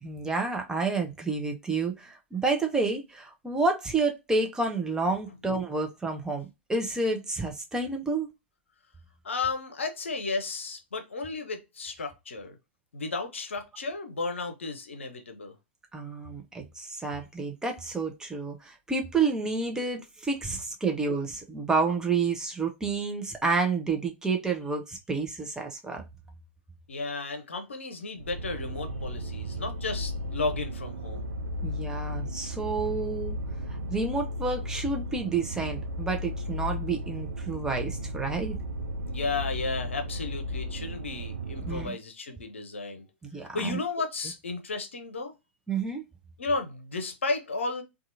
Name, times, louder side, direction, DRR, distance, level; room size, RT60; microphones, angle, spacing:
voice 1, 0.0-8.3 15.9-26.0 31.6-33.4 33.9-38.5 41.6-42.0 43.2-43.8 45.7-46.0, right 4 dB, 10° right, 0.6 m, -29 dB
voice 2, 9.2-12.6 12.9-15.5 26.9-31.2 39.1-43.0 43.5-45.3 46.4-47.8, left 3 dB, 80° left, 0.7 m, -33 dB
sound 1, 28.2-41.9, equal, 80° right, 0.4 m, -35 dB
2.7 x 2.4 x 2.5 m
figure-of-eight pair, 100°, 7 cm